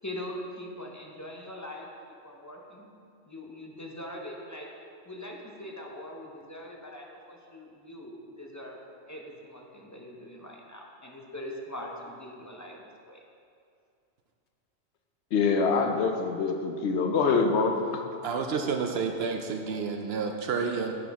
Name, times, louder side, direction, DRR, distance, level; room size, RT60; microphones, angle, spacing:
voice 1, 0.0-1.9 2.2-2.9 3.2-4.7 5.1-8.8 9.1-13.2, left 1 dB, 20° left, -1 dB, 0.6 m, -42 dB
voice 2, 15.3-18.0, left 4 dB, 70° left, 4 dB, 0.9 m, -25 dB
voice 3, 18.2-20.9, right 5 dB, 65° right, 4 dB, 0.7 m, -30 dB
9.3 x 6.0 x 3.6 m, 2.4 s
omnidirectional pair, 1.2 m